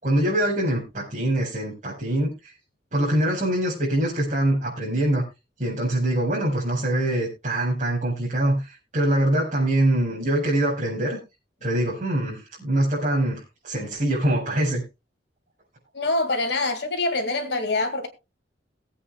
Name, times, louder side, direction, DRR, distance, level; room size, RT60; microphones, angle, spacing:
voice 1, 0.0-2.5 2.9-5.2 5.6-11.2 11.6-14.8, right 1 dB, 45° right, 4.8 m, -24 dB
voice 2, 15.9-18.1, left 2 dB, 65° left, 2.2 m, -25 dB
21.5 x 8.4 x 2.3 m
head